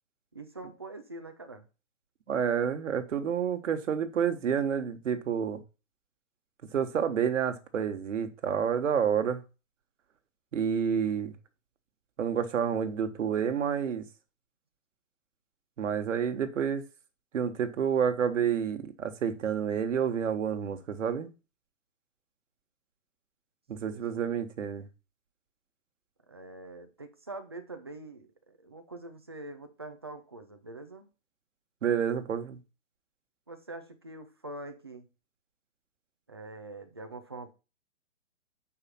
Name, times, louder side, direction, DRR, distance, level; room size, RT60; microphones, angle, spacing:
voice 1, 0.3-1.7 23.8-24.3 26.3-31.1 33.5-35.1 36.3-37.5, right 2 dB, 20° right, 0.4 m, -44 dB
voice 2, 2.3-5.6 6.7-9.4 10.5-11.3 12.2-14.1 15.8-16.8 17.3-21.3 23.7-24.9 31.8-32.6, right 7 dB, 65° right, 1.4 m, -29 dB
6.6 x 4.9 x 5.7 m
hypercardioid pair, 170°, 39 cm